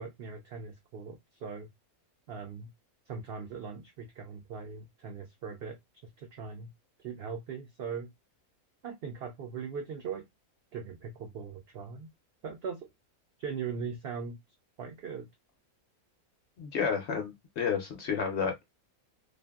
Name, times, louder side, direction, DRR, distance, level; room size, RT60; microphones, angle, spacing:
voice 1, 0.0-1.7 2.3-2.7 3.1-5.8 6.2-6.7 7.0-8.1 8.8-10.3 10.7-12.1 12.4-12.9 13.4-14.4 14.8-15.3, right 6 dB, 70° right, 0.6 m, -40 dB
voice 2, 16.6-18.5, left 6 dB, 60° left, 0.7 m, -31 dB
2.5 x 2.5 x 2.3 m
omnidirectional pair, 1.5 m